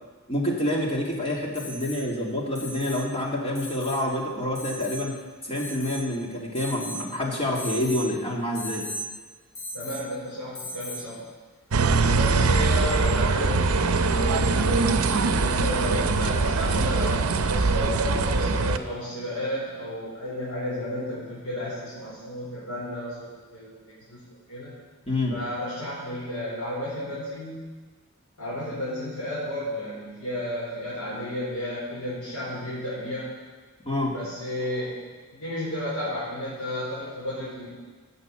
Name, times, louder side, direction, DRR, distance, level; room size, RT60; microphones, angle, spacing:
voice 1, 0.3-5.2 5.4-8.9 25.1-25.4 33.9-34.1, left 1 dB, 25° left, -1 dB, 2.1 m, -27 dB
Alarm, 1.5-2.0 2.5-3.0 3.5-4.0 4.5-5.0 5.5-6.1 6.5-7.0 7.5-8.0 8.5-9.0 9.5-10.0 10.5-11.0 12.8-12.9, equal, 65° left, 3.2 m, -37 dB
voice 2, 9.7-11.2 12.0-23.8 24.1-24.2 24.5-24.7 25.3-27.7 28.4-33.3 34.1-35.0 35.3-37.7, left 1 dB, 90° left, -10 dB, 4.5 m, -32 dB
sound 1, 11.7-18.8, right 3 dB, 70° right, 0.6 m, -22 dB
16.0 x 6.7 x 6.1 m, 1.4 s
head